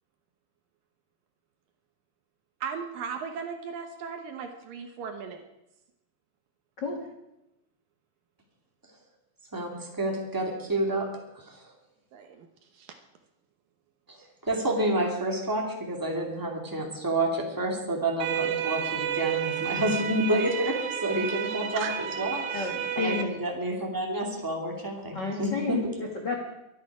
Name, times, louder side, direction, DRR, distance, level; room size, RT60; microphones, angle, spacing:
voice 1, 2.6-5.4 12.1-12.5 12.7-12.9 21.7-21.9, right 6 dB, 70° right, 5 dB, 2.3 m, -36 dB
voice 2, 9.5-11.1 11.3-11.7 14.1-14.2 14.4-22.7 22.9-25.8, right 1 dB, 10° right, 0 dB, 1.5 m, -29 dB
sound 1, 18.2-23.2, right 9 dB, 90° right, 3.1 m, -31 dB
voice 3, 22.5-23.3 25.1-26.4, left 4 dB, 75° left, 1 dB, 0.9 m, -31 dB
23.5 x 10.5 x 4.9 m, 0.91 s
omnidirectional pair, 4.8 m